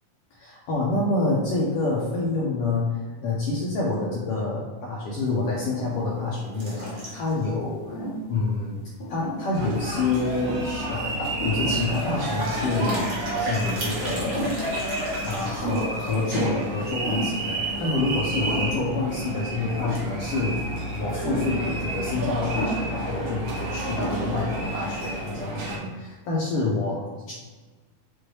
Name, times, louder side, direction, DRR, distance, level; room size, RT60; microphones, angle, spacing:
voice 1, 0.4-8.0 8.3-8.8 9.1-14.7 15.2-20.6 20.9-27.3, left 3 dB, 70° left, -5 dB, 1.5 m, -27 dB
sound 1, 5.5-6.1 6.6-7.3 7.9-8.2 9.0-9.7 10.2-10.7 11.4-11.9 12.2-12.3 12.6-13.1 13.5-13.6 14.1-14.8 15.1-15.2 15.6-16.0 17.0-17.4 18.4-18.9 19.8-20.2 21.2-21.6 22.5-22.9 23.6-23.7 24.0-24.5, equal, 50° left, 1.3 m, -32 dB
sound 2, 6.5-7.5 7.9-8.0 8.2-8.3 8.8-8.9 10.1-10.2 10.5-10.7 11.8-16.4, right 1 dB, 45° right, 1.3 m, -36 dB
sound 3, 9.5-25.8, right 2 dB, 75° right, 2.5 m, -30 dB
6.0 x 2.7 x 3.1 m, 1.3 s
omnidirectional pair, 3.4 m